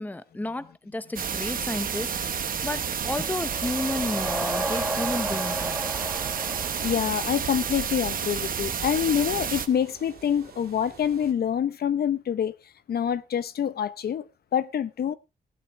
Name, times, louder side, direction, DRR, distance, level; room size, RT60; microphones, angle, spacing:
voice 1, 0.0-5.8, left 2 dB, 10° left, 0.7 m, -32 dB
sound 1, 1.2-9.7, right 7 dB, 60° right, 1.0 m, -30 dB
sound 2, 3.3-7.9, right 1 dB, 10° right, 1.5 m, -33 dB
sound 3, 3.9-11.3, right 5 dB, 80° right, 2.9 m, -50 dB
voice 2, 6.8-12.6 12.9-15.1, left 9 dB, 75° left, 0.7 m, -26 dB
15.5 x 12.0 x 3.1 m
wide cardioid pair, 145°, 16 cm